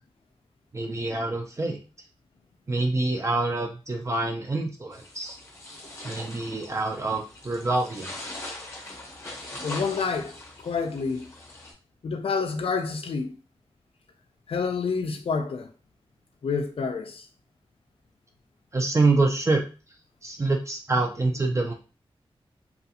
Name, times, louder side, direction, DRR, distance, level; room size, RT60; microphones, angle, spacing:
voice 1, 0.7-1.8 2.7-5.4 6.0-8.1 18.7-19.6 20.2-21.7, right 3 dB, 30° right, 0.5 m, -26 dB
sound 1, 4.9-11.7, left 1 dB, 30° left, 0.8 m, -41 dB
voice 2, 9.6-10.3 10.6-11.3 12.0-13.3 14.5-15.7 16.4-17.2, left 5 dB, 70° left, 0.4 m, -28 dB
2.4 x 2.3 x 2.7 m
wide cardioid pair, 105°, 10 cm